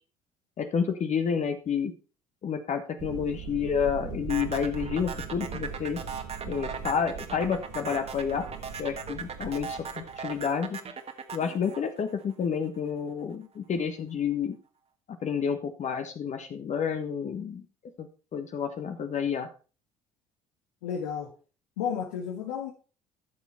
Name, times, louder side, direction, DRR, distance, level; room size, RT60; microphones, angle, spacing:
voice 1, 0.6-1.9 2.4-6.0 6.4-8.4 8.8-10.8 11.3-14.6 15.2-17.6 18.0-19.5, left 7 dB, 45° left, 6 dB, 1.4 m, -30 dB
sound 1, 3.0-10.5, right 7 dB, 65° right, 2.7 m, -41 dB
sound 2, 4.3-12.7, right 6 dB, 35° right, 1.6 m, -38 dB
voice 2, 20.8-21.3 21.8-22.7, left 7 dB, 75° left, 2 dB, 1.5 m, -32 dB
13.5 x 6.3 x 4.2 m, 0.36 s
hypercardioid pair, 60°, 18 cm